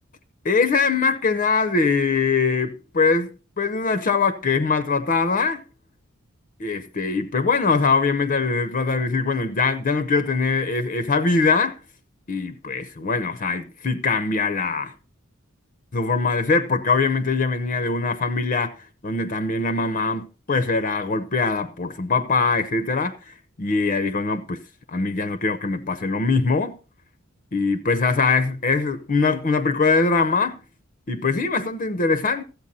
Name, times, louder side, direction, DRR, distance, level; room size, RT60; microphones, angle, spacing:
voice 1, 0.4-3.3 3.6-5.6 6.6-11.8 12.3-14.9 15.9-18.7 19.0-24.6 24.9-26.8 27.5-30.6 31.1-32.4, left 4 dB, 40° left, 0.6 m, -22 dB
13.5 x 8.1 x 4.1 m
head